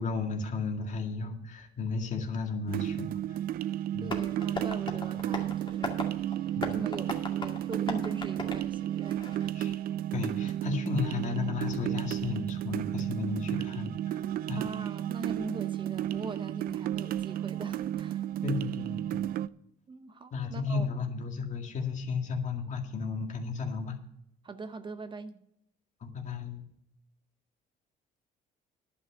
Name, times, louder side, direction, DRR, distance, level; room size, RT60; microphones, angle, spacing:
voice 1, 0.0-3.4 3.9-4.1 6.6-6.8 9.5-9.8 10.1-14.6 18.4-19.2 20.3-24.0 26.0-26.6, left 4 dB, 45° left, 2.2 m, -34 dB
sound 1, 2.7-19.5, right 12 dB, 60° right, 0.4 m, -33 dB
Tap, 4.0-9.5, left 2 dB, 30° left, 2.2 m, -39 dB
voice 2, 4.0-9.6 14.5-18.3 19.9-20.9 24.4-25.4, right 4 dB, 30° right, 0.7 m, -41 dB
11.0 x 6.1 x 7.8 m
cardioid pair, 110°, 17 cm